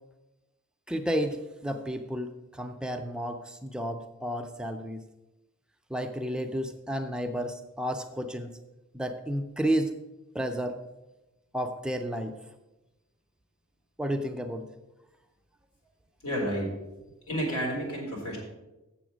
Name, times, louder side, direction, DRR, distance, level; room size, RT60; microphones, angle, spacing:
voice 1, 0.9-5.0 5.9-8.6 8.9-9.9 10.3-10.8 11.5-12.4 14.0-14.7, equal, 5° right, 5 dB, 0.4 m, -32 dB
voice 2, 16.2-16.7 17.3-18.4, equal, 85° left, -3 dB, 3.8 m, -30 dB
7.7 x 7.0 x 6.1 m, 1.0 s
head